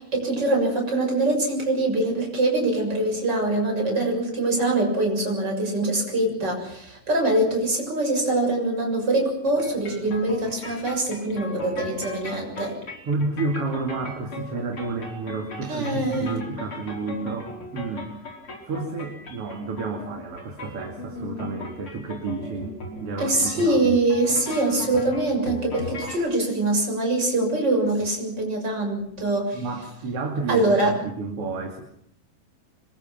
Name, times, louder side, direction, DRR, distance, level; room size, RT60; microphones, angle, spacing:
voice 1, 0.0-12.8 15.7-16.4 23.2-29.6 30.5-30.9, right 2 dB, 30° right, 1 dB, 7.5 m, -23 dB
sound 1, 9.6-26.2, left 2 dB, 40° left, 5.4 m, -38 dB
voice 2, 13.1-18.3 18.6-22.7 23.0-23.8 29.5-31.8, right 3 dB, 45° right, 3 dB, 3.2 m, -31 dB
26.0 x 23.5 x 6.0 m, 0.70 s
omnidirectional pair, 3.8 m